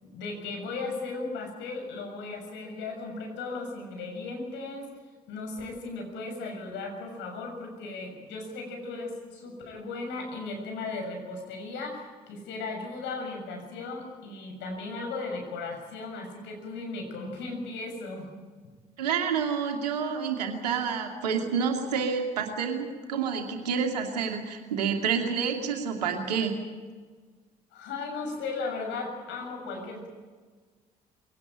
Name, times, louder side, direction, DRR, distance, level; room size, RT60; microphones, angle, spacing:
voice 1, 0.0-4.9 5.3-18.3 27.7-30.1, left 3 dB, 65° left, 2 dB, 6.9 m, -36 dB
voice 2, 19.0-26.6, right 6 dB, 85° right, 3 dB, 2.6 m, -28 dB
22.5 x 18.0 x 9.0 m, 1.5 s
hypercardioid pair, 50°, 20 cm